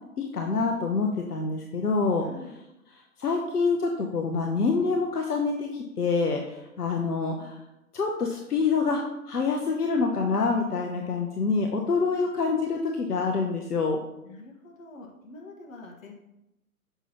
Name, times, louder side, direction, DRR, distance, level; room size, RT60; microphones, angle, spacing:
voice 1, 0.2-2.3 2.9-7.6 7.9-14.0, left 4 dB, 85° left, 2 dB, 0.9 m, -26 dB
voice 2, 2.2-2.6 12.1-12.7 14.2-16.1, left 2 dB, 60° left, 0 dB, 1.7 m, -46 dB
6.9 x 5.6 x 2.9 m, 0.90 s
figure-of-eight pair, 125°, 45 cm